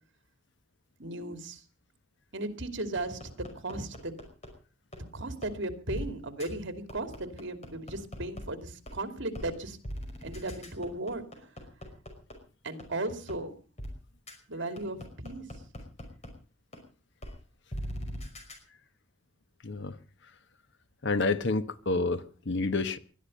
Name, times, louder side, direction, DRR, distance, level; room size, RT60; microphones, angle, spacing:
voice 1, 1.0-1.6 2.3-4.1 5.1-9.8 10.2-11.2 12.6-13.5 14.5-15.4, right 2 dB, 65° right, 2.6 m, -36 dB
sound 1, 3.0-4.5 4.9-5.0 5.4-5.5 5.9-6.0 6.4-6.5 6.9-8.4 8.9-9.0 9.3-9.5 9.8-12.3 12.8-12.9 13.3-13.4 13.8-13.9 14.3-14.4 14.8-16.3 16.7-16.8 17.2-17.3 17.7-18.5, equal, 35° left, 5.4 m, -39 dB
voice 2, 19.6-20.0 21.0-23.0, left 3 dB, 65° left, 1.2 m, -29 dB
20.5 x 12.5 x 5.4 m
head